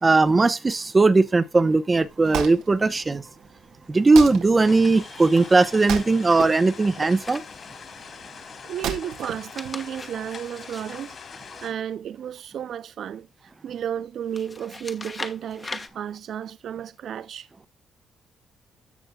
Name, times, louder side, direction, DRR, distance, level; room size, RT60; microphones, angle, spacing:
voice 1, 0.0-3.2 3.9-7.4, right 3 dB, 25° right, 0.9 m, -19 dB
Wood, 1.9-10.3, right 7 dB, 90° right, 1.7 m, -36 dB
sound 1, 4.6-11.7, left 5 dB, 50° left, 3.1 m, -42 dB
sound 2, 7.2-8.0 9.3-11.9 14.3-15.9, left 3 dB, 25° left, 1.3 m, -40 dB
voice 2, 8.6-17.5, right 9 dB, 65° right, 0.4 m, -33 dB
14.5 x 6.2 x 2.3 m
cardioid pair, 90°, 0 cm